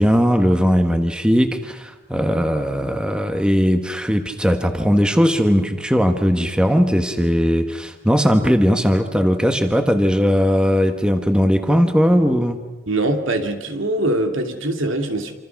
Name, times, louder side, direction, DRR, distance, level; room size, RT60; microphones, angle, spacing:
voice 1, 0.0-12.6, equal, 5° right, 6 dB, 1.3 m, -18 dB
voice 2, 12.9-15.4, right 1 dB, 75° right, 5 dB, 2.7 m, -22 dB
27.5 x 26.0 x 6.0 m, 1.1 s
head